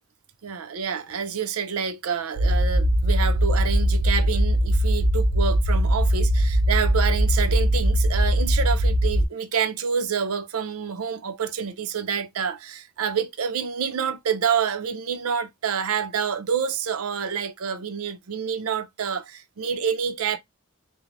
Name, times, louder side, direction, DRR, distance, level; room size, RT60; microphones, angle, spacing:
voice 1, 0.4-20.4, right 7 dB, 90° right, 0.5 m, -28 dB
sound 1, 2.3-9.3, equal, 75° left, 0.9 m, -21 dB
3.1 x 2.1 x 2.5 m
head